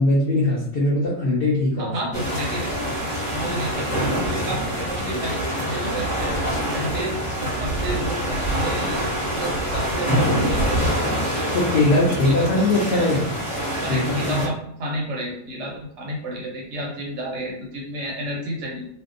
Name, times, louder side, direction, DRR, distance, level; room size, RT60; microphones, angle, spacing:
voice 1, 0.0-1.9 11.5-13.3 13.9-14.4, left 2 dB, 80° left, -4 dB, 0.5 m, -20 dB
voice 2, 1.8-2.7 3.0-6.3 6.7-9.0 9.3-10.9 12.1-13.3 13.8-18.9, right 1 dB, 65° right, -2 dB, 0.7 m, -31 dB
sound 1, 2.1-14.5, equal, 40° left, 0.9 m, -25 dB
2.6 x 2.1 x 2.4 m, 0.70 s
omnidirectional pair, 1.6 m